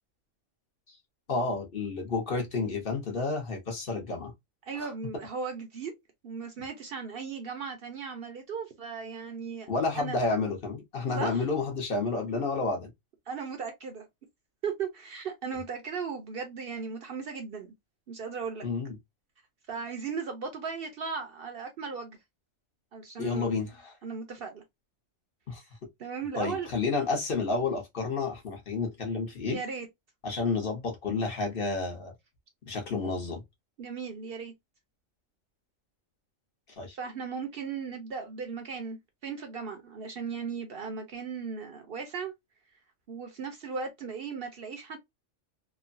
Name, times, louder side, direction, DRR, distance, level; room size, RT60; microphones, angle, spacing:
voice 1, 1.3-4.3 4.7-4.9 9.7-12.9 18.6-18.9 23.2-23.9 25.5-25.6 26.4-29.6 30.2-32.1 32.6-33.4 36.8-37.0, left 3 dB, 50° left, 1.0 m, -30 dB
voice 2, 4.6-5.9 6.2-10.2 11.1-11.5 13.3-14.1 14.6-17.7 18.1-18.6 19.7-22.2 22.9-23.6 24.0-24.6 26.0-26.7 29.4-29.9 33.8-34.5 36.9-39.0 39.2-42.3 43.1-45.0, right 5 dB, 60° right, 0.7 m, -37 dB
3.0 x 2.1 x 2.5 m
omnidirectional pair, 1.3 m